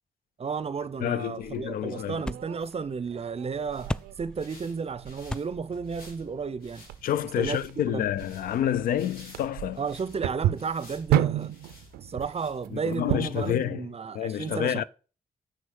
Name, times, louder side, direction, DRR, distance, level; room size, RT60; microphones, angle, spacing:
voice 1, 0.4-6.8 7.4-7.6 7.9-8.0 9.8-11.5 12.0-14.8, right 5 dB, 40° right, 0.6 m, -33 dB
sound 1, 0.6-7.6, left 1 dB, 5° left, 0.3 m, -42 dB
voice 2, 1.0-2.2 7.0-9.8 12.7-13.9 14.1-14.8, left 10 dB, 75° left, 0.4 m, -28 dB
sound 2, 1.4-13.5, right 13 dB, 90° right, 0.4 m, -33 dB
sound 3, 3.7-13.0, left 2 dB, 90° left, 2.1 m, -53 dB
6.2 x 5.0 x 6.3 m
supercardioid pair, 45°, 15 cm